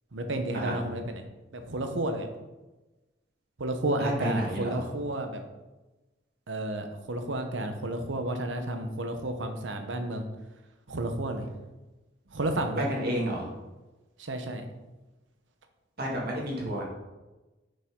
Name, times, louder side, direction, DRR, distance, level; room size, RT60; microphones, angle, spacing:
voice 1, 0.1-1.2 1.5-2.3 3.6-5.4 6.5-10.2 10.9-11.5 12.3-12.8 14.2-14.6, right 1 dB, 85° right, 6 dB, 0.9 m, -31 dB
voice 2, 4.0-4.8 12.8-13.5 16.0-16.8, equal, 55° right, -2 dB, 1.9 m, -31 dB
6.9 x 5.4 x 3.6 m, 1.1 s
head